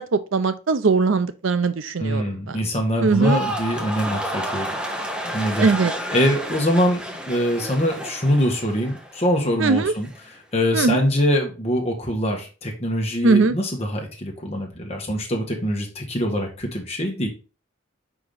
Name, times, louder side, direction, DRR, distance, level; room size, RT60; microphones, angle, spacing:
voice 1, 0.0-2.6 3.0-3.4 5.6-5.9 9.6-9.9 10.7-11.0 13.2-13.5, right 4 dB, 80° right, 0.5 m, -20 dB
voice 2, 2.0-4.7 5.2-5.7 6.1-10.1 10.5-17.3, equal, 30° left, 1.4 m, -23 dB
sound 1, 3.0-9.4 9.7-10.2, right 1 dB, 5° right, 0.8 m, -30 dB
5.0 x 4.8 x 3.9 m
head